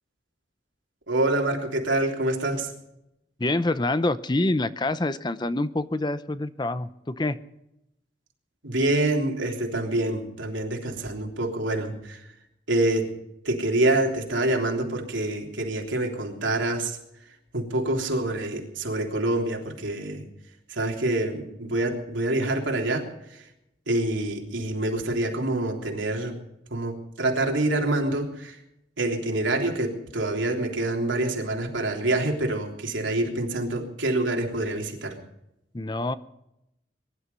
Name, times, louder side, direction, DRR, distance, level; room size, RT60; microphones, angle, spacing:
voice 1, 1.1-2.7 8.6-12.3 12.7-13.1 13.4-17.0 17.5-20.3 20.7-23.4 23.9-26.4 26.7-28.6 29.0-35.2, right 2 dB, 90° right, 2 dB, 3.4 m, -26 dB
voice 2, 3.4-7.4 35.7-36.1, left 2 dB, 25° left, 13 dB, 0.6 m, -26 dB
22.0 x 11.5 x 5.5 m, 0.83 s
head